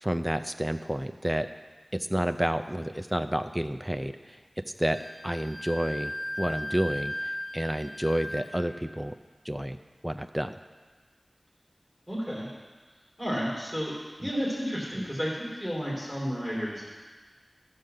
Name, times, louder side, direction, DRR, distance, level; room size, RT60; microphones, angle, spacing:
voice 1, 0.0-1.5 1.9-4.4 4.8-5.0 5.2-9.1 9.5-9.8 10.0-10.5 14.2-14.3, equal, 10° right, 7 dB, 0.4 m, -30 dB
Wind instrument woodwind instrument, 4.9-8.6, left 1 dB, 55° right, 0.9 m, -37 dB
voice 2, 12.1-12.5 13.2-13.9 14.2-16.9, equal, 15° left, -6 dB, 3.1 m, -31 dB
13.0 x 4.8 x 6.6 m, 1.4 s
wide cardioid pair, 55°, 0 cm